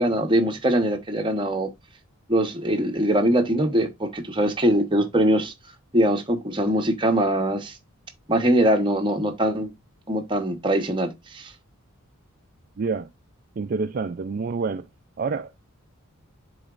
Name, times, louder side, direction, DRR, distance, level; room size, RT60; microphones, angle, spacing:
voice 1, 0.0-1.7 2.3-5.5 5.9-7.7 8.3-9.7 10.1-11.5, right 1 dB, 20° right, 1.0 m, -22 dB
voice 2, 12.8-13.1 13.6-14.9 15.2-15.7, right 4 dB, 45° right, 0.4 m, -28 dB
10.5 x 4.0 x 2.4 m
head